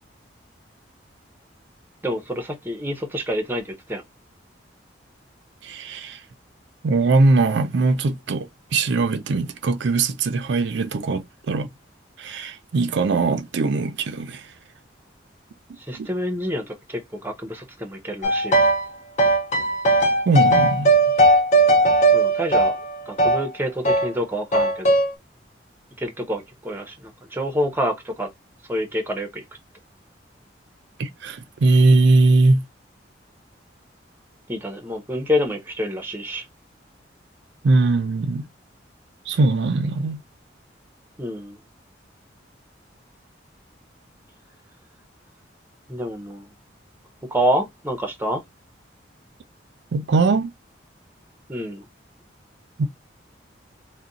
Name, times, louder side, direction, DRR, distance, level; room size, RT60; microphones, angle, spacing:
voice 1, 2.0-4.0 15.8-18.6 22.1-22.8 23.1-24.9 26.0-26.9 27.3-28.3 28.7-29.4 34.5-36.5 41.2-41.6 45.9-46.4 47.3-48.4 51.5-51.8, equal, 10° right, 0.6 m, -27 dB
voice 2, 5.6-6.2 6.8-11.7 12.2-14.5 15.9-16.1 20.3-20.9 31.0-32.6 37.6-38.4 39.3-40.2 49.9-50.5 52.8-52.9, right 3 dB, 70° right, 0.4 m, -20 dB
sound 1, 18.2-18.9 19.2-23.4 23.8-24.1 24.5-25.1, right 1 dB, 40° left, 0.5 m, -18 dB
2.5 x 2.1 x 3.8 m
head